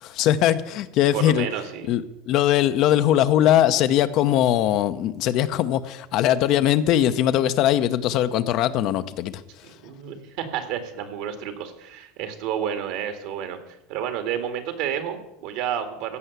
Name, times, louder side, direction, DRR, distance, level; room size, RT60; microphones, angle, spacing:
voice 1, 0.0-1.5 1.9-9.4, left 11 dB, 55° left, 11 dB, 0.7 m, -21 dB
voice 2, 1.1-1.9 9.6-13.6 13.9-16.2, right 9 dB, 70° right, 7 dB, 2.0 m, -30 dB
15.5 x 5.6 x 8.1 m, 0.86 s
supercardioid pair, 115°, 0 cm